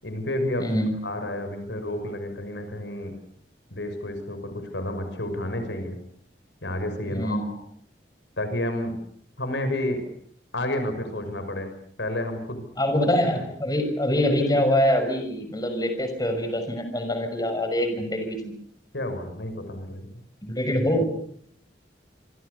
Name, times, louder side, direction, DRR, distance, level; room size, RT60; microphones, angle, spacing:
voice 1, 0.0-0.7 1.0-3.1 3.7-6.0 6.6-7.5 8.4-8.9 9.4-10.0 10.5-11.7 12.0-12.6 18.9-20.1, left 1 dB, 85° left, 8 dB, 6.1 m, -30 dB
voice 2, 0.6-1.0 7.1-7.5 12.8-18.5 20.4-21.0, left 1 dB, 20° left, 6 dB, 6.0 m, -24 dB
27.0 x 26.0 x 6.8 m, 0.63 s
head